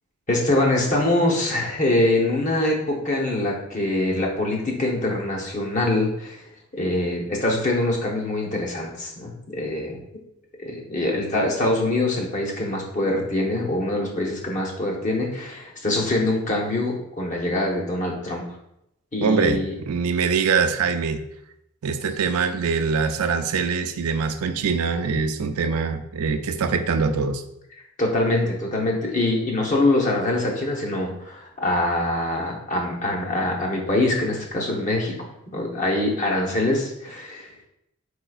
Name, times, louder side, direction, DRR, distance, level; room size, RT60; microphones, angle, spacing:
voice 1, 0.3-6.4 6.7-10.0 10.6-18.4 19.1-19.7 28.0-35.1 35.5-37.7, left 1 dB, 35° left, -1 dB, 0.8 m, -24 dB
voice 2, 19.2-21.2 21.8-27.4, right 5 dB, 90° right, 9 dB, 0.4 m, -23 dB
4.7 x 4.3 x 2.4 m, 0.80 s
head